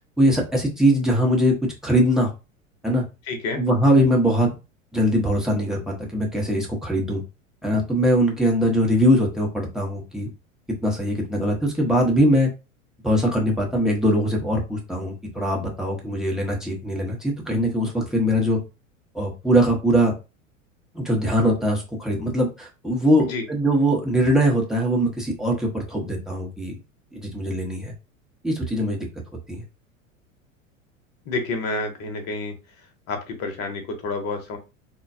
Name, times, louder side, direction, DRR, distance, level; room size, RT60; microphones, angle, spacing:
voice 1, 0.2-2.3 2.8-3.0 3.6-4.5 4.9-7.2 7.6-10.3 10.8-12.5 13.0-18.6 19.1-20.1 20.9-26.8 27.1-27.9 28.4-29.1 29.5-29.6, equal, ahead, -1 dB, 0.8 m, -21 dB
voice 2, 3.3-3.6 23.2-23.4 31.3-32.5 33.1-34.6, left 3 dB, 35° left, 5 dB, 0.9 m, -29 dB
3.8 x 2.2 x 2.5 m, 0.29 s
figure-of-eight pair, 85°, 40 cm